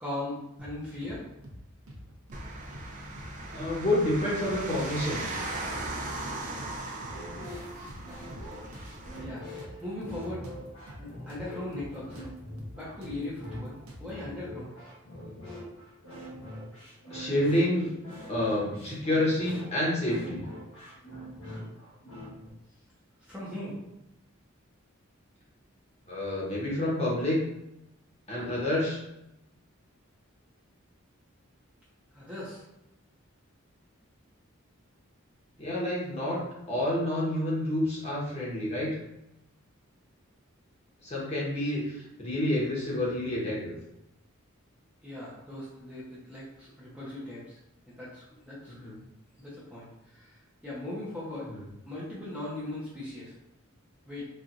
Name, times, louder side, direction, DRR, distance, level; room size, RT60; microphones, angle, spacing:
voice 1, 0.0-1.3 9.2-10.4 11.0-12.2 12.7-14.7 23.2-23.8 32.1-32.6 45.0-47.6 47.9-48.7 49.4-51.5 51.9-53.3 54.1-54.3, left 1 dB, 5° right, -8 dB, 0.8 m, -39 dB
sound 1, 0.6-1.2 1.4-1.6 1.9-2.9 3.2-3.3 3.6-4.6 4.9-5.0 5.3-6.3 6.6-6.7 7.0-8.5 8.7-11.5 11.7-11.9 12.2-14.2, equal, 85° right, 0.7 m, -47 dB
sound 2, 2.3-9.2, right 2 dB, 35° right, 0.5 m, -38 dB
voice 2, 3.5-5.2 17.1-17.9 18.3-20.4 26.1-27.4 28.3-29.0 35.6-36.4 36.7-39.0 41.0-43.7 48.7-49.0 51.5-51.6, left 1 dB, 30° left, -6 dB, 1.1 m, -28 dB
sound 3, 6.4-22.5, equal, 80° left, 1.1 m, -44 dB
4.3 x 2.5 x 2.5 m, 0.87 s
head